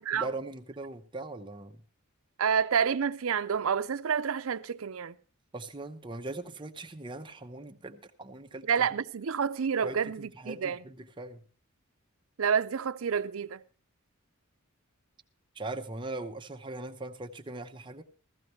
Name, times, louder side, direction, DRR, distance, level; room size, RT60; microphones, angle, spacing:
voice 1, 0.0-1.8 5.5-9.0 9.8-11.4 15.5-18.0, right 2 dB, 20° right, 0.7 m, -40 dB
voice 2, 2.4-5.1 8.7-10.8 12.4-13.6, right 7 dB, 70° right, 0.5 m, -29 dB
15.5 x 14.0 x 3.1 m
head